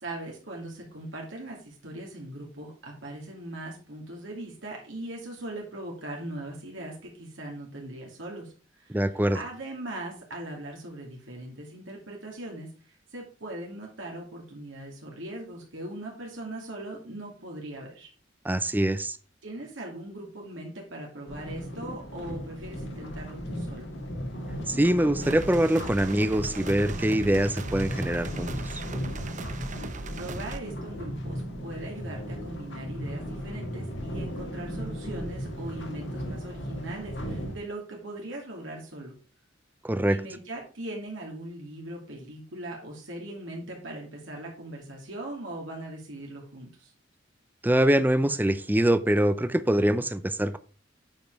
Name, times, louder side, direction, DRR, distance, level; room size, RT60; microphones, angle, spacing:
voice 1, 0.0-18.1 19.4-23.9 30.1-39.1 40.0-46.9, right 1 dB, 70° right, -1 dB, 2.5 m, -40 dB
voice 2, 8.9-9.4 18.4-19.2 24.7-28.8 39.8-40.2 47.6-50.6, right 1 dB, 10° right, 12 dB, 0.5 m, -24 dB
sound 1, 21.3-37.6, equal, 65° left, 1.8 m, -36 dB
sound 2, 25.2-30.6, right 3 dB, 40° right, 0.7 m, -39 dB
9.1 x 5.2 x 4.7 m, 0.38 s
head